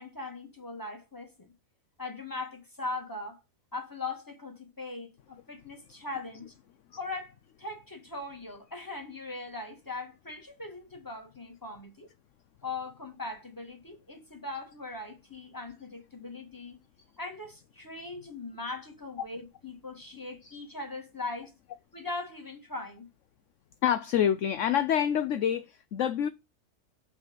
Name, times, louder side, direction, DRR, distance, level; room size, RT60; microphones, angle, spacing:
voice 1, 0.0-1.5 2.0-3.4 3.7-6.5 7.0-12.1 12.6-16.8 17.2-21.6 21.9-23.1, left 3 dB, 15° left, 2.3 m, -40 dB
voice 2, 23.8-26.3, left 9 dB, 60° left, 0.9 m, -27 dB
6.5 x 6.0 x 7.4 m
omnidirectional pair, 1.6 m